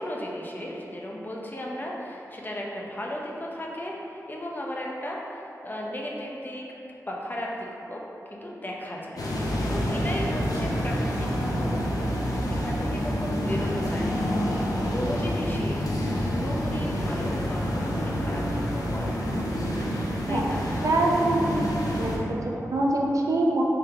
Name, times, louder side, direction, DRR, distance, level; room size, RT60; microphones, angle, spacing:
voice 1, 0.0-6.6 7.1-8.0 8.3-9.2 9.6-12.0 12.6-14.3 14.9-19.3 20.3-20.7, equal, 30° left, -3 dB, 0.5 m, -35 dB
sound 1, 9.2-22.2, equal, 75° left, 0.5 m, -28 dB
voice 2, 20.8-21.4 22.0-23.6, right 2 dB, 60° right, -1 dB, 0.5 m, -24 dB
3.4 x 2.8 x 3.7 m, 2.9 s
wide cardioid pair, 65°, 6 cm